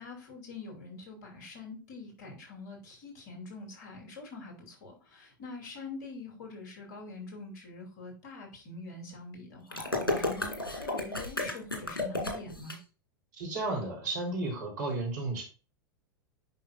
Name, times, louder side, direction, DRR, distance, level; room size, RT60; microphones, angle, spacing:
voice 1, 0.0-12.8, left 3 dB, 55° left, 1 dB, 2.7 m, -45 dB
sound 1, 9.7-12.7, left 2 dB, 85° left, 2.0 m, -32 dB
voice 2, 13.3-15.4, right 2 dB, 60° right, -1 dB, 3.2 m, -33 dB
8.3 x 5.8 x 2.4 m, 0.33 s
figure-of-eight pair, 90°, 11 cm